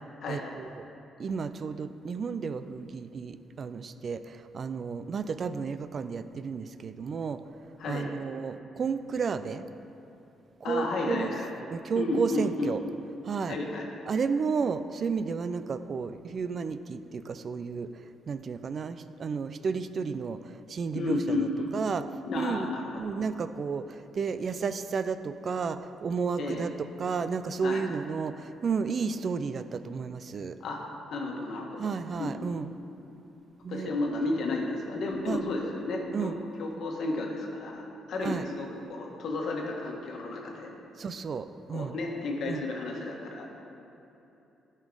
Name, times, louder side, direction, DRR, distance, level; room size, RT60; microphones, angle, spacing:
voice 1, 0.3-0.8 1.2-7.4 7.9-9.7 10.6-11.3 11.7-12.8 13.2-13.6 14.1-17.9 18.3-22.0 22.3-26.7 27.0-30.6 31.8-32.7 33.6-33.9 35.3-35.4 36.1-36.4 38.2-38.4 41.0-42.0 42.5-42.6, right 5 dB, 50° right, 12 dB, 0.3 m, -32 dB
voice 2, 10.6-11.5 12.0-12.7 13.5-13.9 20.9-21.7 22.3-22.9 26.4-26.6 27.6-27.8 30.6-30.8 31.1-31.8 32.2-32.7 33.7-36.3 36.6-40.7 41.7-43.5, left 2 dB, 70° left, 0 dB, 1.3 m, -32 dB
11.5 x 5.3 x 3.8 m, 3.0 s
cardioid pair, 90°, 0 cm